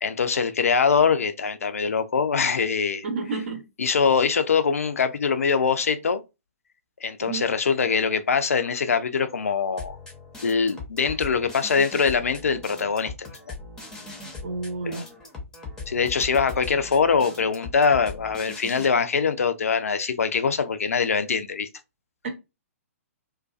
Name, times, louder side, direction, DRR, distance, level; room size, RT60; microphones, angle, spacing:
voice 1, 0.0-3.0 3.8-6.2 7.0-10.0 10.4-13.1 13.5-13.6 14.9-15.0 15.9-21.7, left 5 dB, 75° left, 0.4 m, -23 dB
voice 2, 3.0-3.6 7.2-7.5 14.4-15.0 22.2-22.3, right 4 dB, 55° right, 0.9 m, -30 dB
sound 1, 9.8-18.8, left 3 dB, 5° left, 0.7 m, -40 dB
2.5 x 2.2 x 2.3 m
figure-of-eight pair, 125°, 8 cm